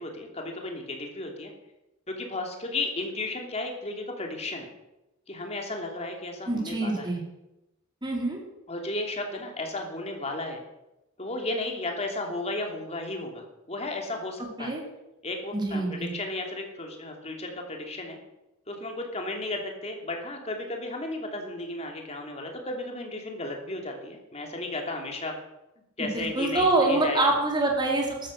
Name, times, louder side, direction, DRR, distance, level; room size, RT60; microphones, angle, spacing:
voice 1, 0.0-1.5 2.1-4.7 5.3-7.1 8.7-10.6 11.2-14.7 15.2-18.2 18.7-25.3 26.0-27.3, left 2 dB, 30° left, 2 dB, 2.9 m, -34 dB
voice 2, 6.5-7.2 8.0-8.4 14.6-14.8 15.5-16.1 26.0-28.3, right 2 dB, 20° right, 0 dB, 3.8 m, -25 dB
14.0 x 12.5 x 6.5 m, 0.94 s
head